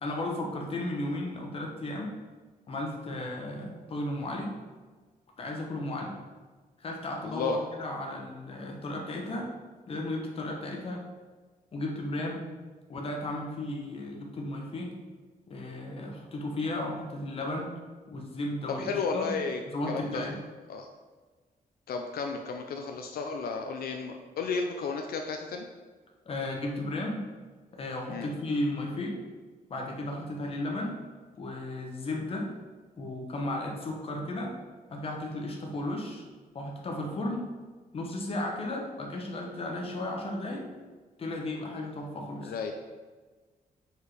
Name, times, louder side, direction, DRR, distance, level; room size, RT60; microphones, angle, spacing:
voice 1, 0.0-2.1 2.7-4.5 5.4-6.1 6.8-9.5 9.9-11.0 11.7-12.5 12.9-14.9 15.5-17.7 18.1-19.4 19.7-20.4 26.3-27.2 27.7-29.2 29.7-31.0 31.4-32.5 33.0-34.5 34.9-36.2 36.5-37.4 37.9-40.7 41.2-42.5, left 1 dB, 40° left, 0 dB, 1.1 m, -34 dB
voice 2, 7.2-7.6 18.8-19.6 19.9-20.3 20.7-20.9 21.9-25.7 28.1-28.3 42.4-42.7, left 4 dB, 80° left, 4 dB, 0.5 m, -33 dB
4.9 x 4.7 x 4.9 m, 1.3 s
wide cardioid pair, 175°, 15 cm